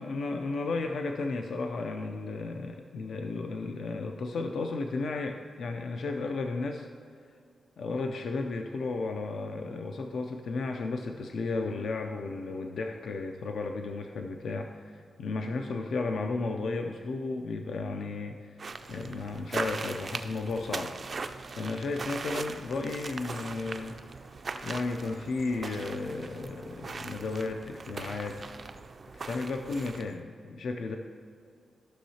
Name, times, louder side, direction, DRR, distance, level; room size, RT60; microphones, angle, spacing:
voice 1, 0.0-6.9 7.8-20.9 21.6-24.0 24.6-28.4 29.1-31.0, left 3 dB, 65° left, 4 dB, 0.4 m, -34 dB
sound 1, 18.6-30.2, right 4 dB, 35° right, 0.3 m, -40 dB
14.5 x 6.2 x 2.8 m, 2.3 s
wide cardioid pair, 170°, 0 cm